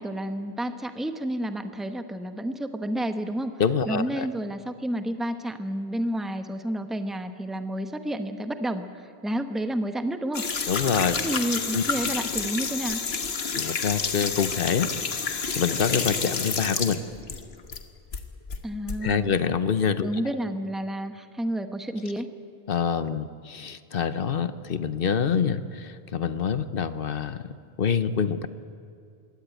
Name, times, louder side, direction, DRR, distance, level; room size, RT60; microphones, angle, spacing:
voice 1, 0.0-3.5 3.9-10.4 11.2-13.0 18.6-19.4 20.0-22.3, right 1 dB, ahead, 8 dB, 0.9 m, -30 dB
voice 2, 3.6-4.3 10.7-11.2 11.7-11.8 13.5-17.0 19.0-20.1 22.7-27.4 27.8-28.5, left 7 dB, 65° left, 12 dB, 1.0 m, -26 dB
sound 1, 10.3-17.8 18.1-19.0, left 5 dB, 80° left, 1.5 m, -29 dB
22.5 x 17.0 x 9.2 m, 2.4 s
omnidirectional pair, 1.0 m